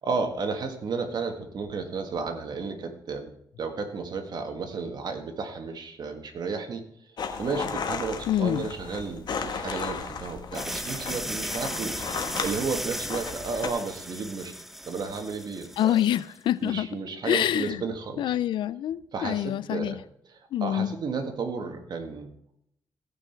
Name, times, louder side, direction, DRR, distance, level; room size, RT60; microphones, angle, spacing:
voice 1, 0.0-3.3 3.6-6.9 7.4-12.0 12.4-14.5 14.9-16.0 16.6-18.3 19.1-20.0 20.3-22.3, right 4 dB, 60° right, 5 dB, 1.7 m, -33 dB
sound 1, 7.2-13.7, left 5 dB, 60° left, 1.4 m, -35 dB
voice 2, 8.3-8.7 15.8-16.9 17.2-17.8 18.2-20.0 20.5-21.0, left 11 dB, 85° left, 18 dB, 0.4 m, -26 dB
sound 2, 10.5-16.2, equal, 5° right, 0.8 m, -36 dB
16.5 x 5.9 x 4.5 m, 0.73 s
cardioid pair, 95°, 8 cm